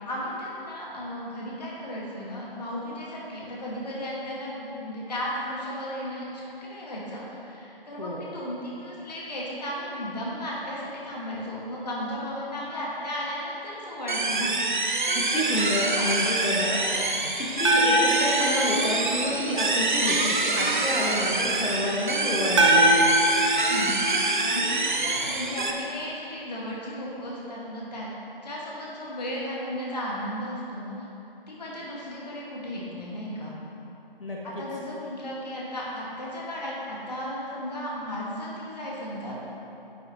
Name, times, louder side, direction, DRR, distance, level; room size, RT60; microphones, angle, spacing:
voice 1, 0.0-14.5 15.8-16.1 16.7-16.8 23.4-24.0 24.4-28.1 28.4-30.9 31.5-33.5 34.4-39.4, equal, 45° left, -6 dB, 2.0 m, -35 dB
sound 1, 14.1-25.7, right 3 dB, 55° right, 0.9 m, -26 dB
voice 2, 15.1-16.8 17.4-23.0 34.2-34.6, left 1 dB, 70° left, -4 dB, 1.9 m, -29 dB
sound 2, 17.6-19.8 22.6-24.9, right 1 dB, 30° right, 1.0 m, -24 dB
10.5 x 8.7 x 3.2 m, 3.0 s
figure-of-eight pair, 160°, 29 cm